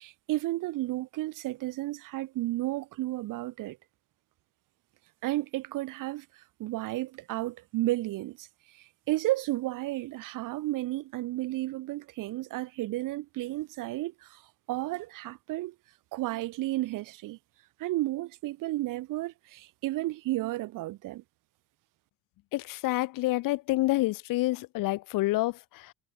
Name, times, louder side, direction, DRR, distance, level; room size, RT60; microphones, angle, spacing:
voice 1, 0.0-3.8 5.2-14.4 14.7-15.7 16.1-17.4 17.8-21.2, right 17 dB, 65° right, 7.9 m, -32 dB
voice 2, 22.5-25.9, left 18 dB, 70° left, 3.7 m, -28 dB
cardioid pair, 170°, 34 cm